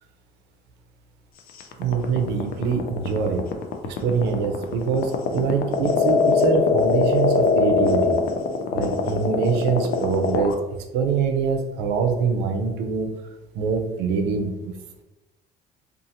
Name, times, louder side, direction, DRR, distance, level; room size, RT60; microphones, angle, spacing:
sound 1, 1.6-10.5, left 4 dB, 60° left, 0.4 m, -21 dB
voice 1, 1.8-3.4 3.8-8.2 8.7-10.6 10.9-13.1 13.5-14.7, right 5 dB, 90° right, 5 dB, 0.5 m, -24 dB
2.6 x 2.4 x 2.7 m, 1.0 s
cardioid pair, 110°, 17 cm